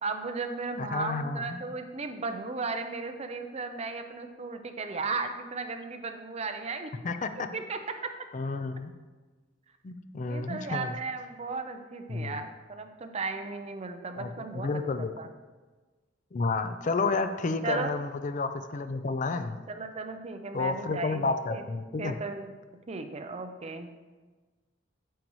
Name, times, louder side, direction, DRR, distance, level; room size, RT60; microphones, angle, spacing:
voice 1, 0.0-6.9 7.4-7.8 10.3-15.3 17.6-17.9 19.7-21.6 22.0-22.5 22.9-23.9, right 3 dB, 35° right, 6 dB, 0.6 m, -35 dB
voice 2, 0.8-1.6 7.0-7.5 8.3-8.9 9.8-11.0 12.1-12.4 14.2-15.1 16.3-19.6 20.5-22.2, left 3 dB, 40° left, 10 dB, 0.4 m, -31 dB
9.2 x 7.5 x 3.1 m, 1.3 s
head